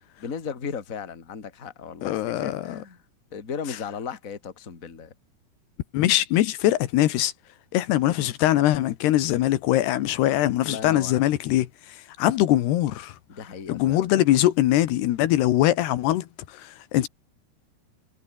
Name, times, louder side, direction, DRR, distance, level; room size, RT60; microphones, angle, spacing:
voice 1, 0.2-3.0 3.3-5.1 10.3-11.3 13.3-14.1, left 6 dB, 25° left, 2.2 m, -36 dB
voice 2, 2.0-2.7 5.9-7.3 7.7-11.7 12.2-13.1 13.7-16.3 16.5-17.1, left 14 dB, 80° left, 3.3 m, -22 dB
omnidirectional pair, 4.8 m